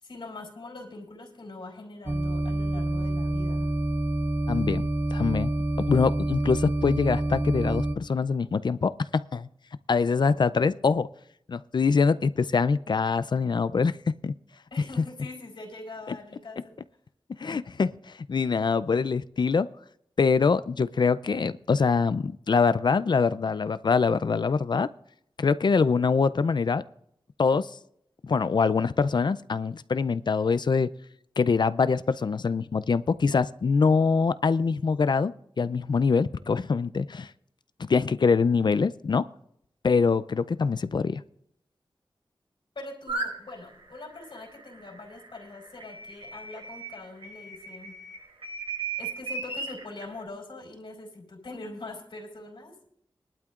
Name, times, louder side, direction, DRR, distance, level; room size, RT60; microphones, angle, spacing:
voice 1, 0.0-3.7 14.7-16.8 42.7-47.9 49.0-52.9, left 2 dB, 70° left, 0 dB, 4.2 m, -42 dB
sound 1, 2.1-8.0, right 1 dB, 25° right, 0.6 m, -27 dB
voice 2, 4.5-4.8 5.1-5.5 5.9-9.5 9.9-11.1 11.5-13.9 14.2-14.3 17.4-17.9 18.3-19.7 20.2-24.9 25.4-26.8 27.4-27.7 28.2-30.9 31.4-37.3 37.8-39.2 39.8-41.2, left 5 dB, 55° left, 15 dB, 0.4 m, -24 dB
sound 2, 43.1-43.3 44.0-47.0 47.2-50.0, right 4 dB, 85° right, 6.5 m, -35 dB
21.5 x 12.0 x 2.5 m, 0.73 s
wide cardioid pair, 100°, 9 cm